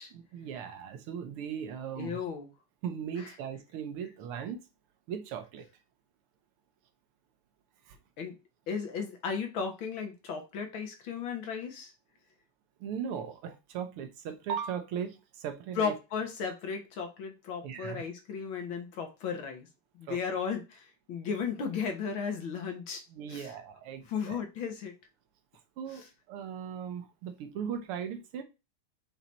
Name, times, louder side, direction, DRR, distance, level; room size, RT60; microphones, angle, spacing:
voice 1, 0.1-2.2 2.8-4.6 5.1-5.7 7.9-8.0 12.8-15.9 17.6-18.0 20.1-20.2 23.1-24.4 25.8-28.4, right 8 dB, 80° right, 1.8 m, -38 dB
voice 2, 2.0-2.5 3.2-3.3 8.2-8.4 8.7-11.9 15.8-19.7 20.0-23.0 23.3-23.5 24.0-24.9 25.9-26.1, left 6 dB, 65° left, 2.0 m, -35 dB
6.0 x 4.0 x 4.2 m
omnidirectional pair, 2.4 m